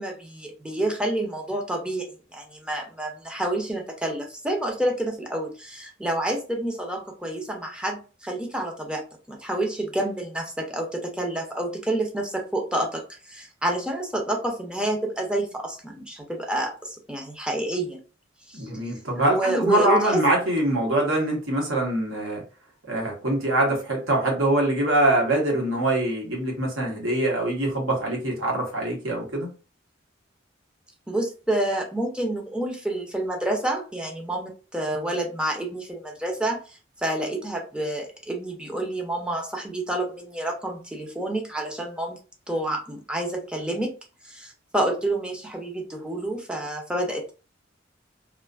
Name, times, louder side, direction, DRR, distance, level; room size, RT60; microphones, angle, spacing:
voice 1, 0.0-18.0 18.5-18.7 19.3-20.2 31.1-42.2 42.5-43.9 44.2-47.3, right 1 dB, 5° right, 2 dB, 0.5 m, -28 dB
voice 2, 18.5-22.4 22.9-29.5, right 1 dB, 85° right, -1 dB, 1.1 m, -24 dB
2.5 x 2.4 x 2.3 m, 0.34 s
head